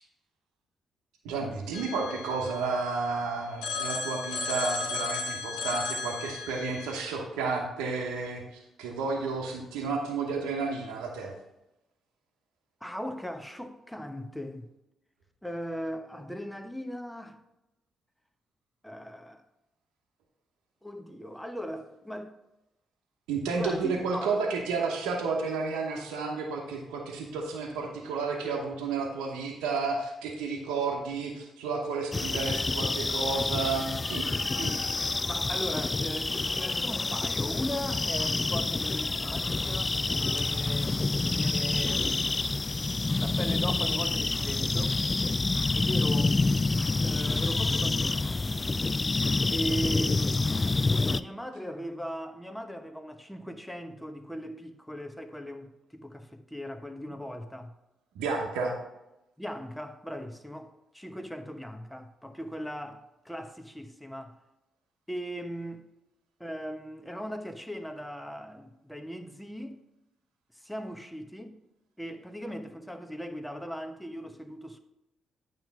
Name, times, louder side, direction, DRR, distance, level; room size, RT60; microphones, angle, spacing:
voice 1, 1.2-11.3 23.3-34.9 58.1-58.7, right 4 dB, 80° right, 0.9 m, -32 dB
Telephone, 1.7-3.1 3.6-7.0, left 3 dB, 85° left, 0.8 m, -35 dB
voice 2, 12.8-14.7 15.4-17.4 18.8-19.4 20.8-22.3 23.5-24.4 35.3-42.3 43.2-45.0 45.7-46.4 47.0-48.5 49.5-50.2 51.1-57.7 59.4-64.4 65.1-65.8 66.4-69.8 70.5-71.5 72.0-74.8, equal, 5° left, 0.9 m, -38 dB
sound 1, 32.1-51.2, left 3 dB, 30° left, 0.3 m, -28 dB
9.0 x 3.1 x 5.8 m
hypercardioid pair, 50°, 0 cm